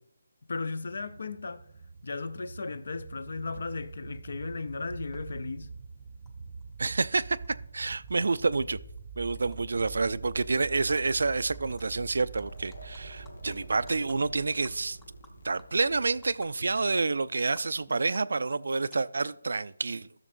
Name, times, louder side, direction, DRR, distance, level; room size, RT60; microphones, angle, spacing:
voice 1, 0.5-1.7 2.0-5.7, left 4 dB, 60° left, 0.6 m, -36 dB
sound 1, 0.8-17.8, right 5 dB, 35° right, 0.7 m, -45 dB
Animal, 5.1-5.2 6.3-6.4 6.6-7.5 7.8-9.6 9.9-10.1 10.4-11.3 11.5-11.8 12.2-16.5 16.8-17.0 17.4-19.5, left 2 dB, 10° left, 0.6 m, -59 dB
voice 2, 6.8-7.4 7.7-8.8 9.2-15.0 15.4-20.3, right 3 dB, 65° right, 0.3 m, -28 dB
sound 2, 12.3-18.3, left 1 dB, 80° left, 1.5 m, -51 dB
13.5 x 6.5 x 2.6 m
figure-of-eight pair, 165°, 0 cm